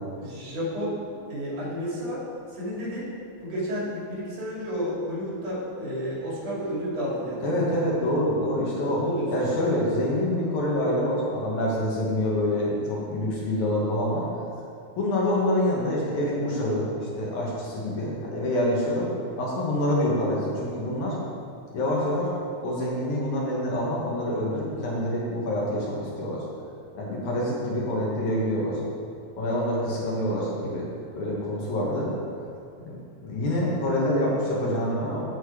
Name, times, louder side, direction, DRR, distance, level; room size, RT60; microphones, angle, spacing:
voice 1, 0.1-3.1 3.4-7.7 8.9-9.6 32.8-33.0, equal, 75° right, -6 dB, 4.1 m, -31 dB
voice 2, 7.4-9.0 9.3-14.2 15.0-19.1 19.4-21.2 21.7-22.3 22.6-26.4 26.9-28.8 29.4-30.9 31.2-32.1 33.2-35.2, left 1 dB, 70° left, -5 dB, 3.1 m, -26 dB
13.5 x 4.5 x 4.9 m, 2.4 s
omnidirectional pair, 3.6 m